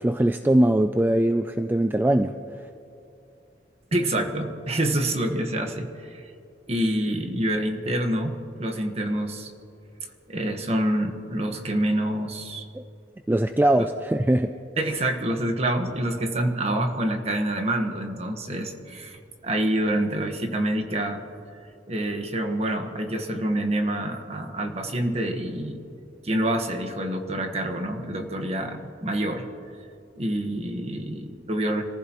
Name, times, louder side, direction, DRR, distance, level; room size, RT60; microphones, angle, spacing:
voice 1, 0.0-2.4 12.7-12.8 13.3-14.5, right 1 dB, 10° right, 8 dB, 0.3 m, -21 dB
voice 2, 3.9-6.3 6.7-9.5 10.3-12.7 13.8-13.9 14.8-21.2 21.9-25.8 26.2-29.5 30.2-31.8, right 1 dB, 35° right, 5 dB, 1.3 m, -27 dB
26.5 x 15.0 x 3.0 m, 2.7 s
head